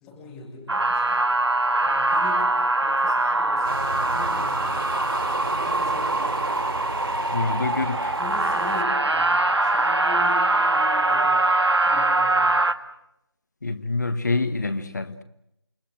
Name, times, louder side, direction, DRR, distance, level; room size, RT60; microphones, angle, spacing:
voice 1, 0.0-1.3 1.5-6.7 8.0-11.6 11.9-12.6, left 4 dB, 5° left, 0 dB, 1.1 m, -41 dB
sound 1, 0.7-12.7, right 2 dB, 75° right, 1.7 m, -23 dB
sound 2, 3.6-8.8, right 2 dB, 55° right, 4.1 m, -34 dB
voice 2, 7.3-8.2 13.6-15.2, left 3 dB, 40° left, 10 dB, 1.7 m, -26 dB
28.5 x 22.0 x 7.7 m, 0.82 s
figure-of-eight pair, 170°, 14 cm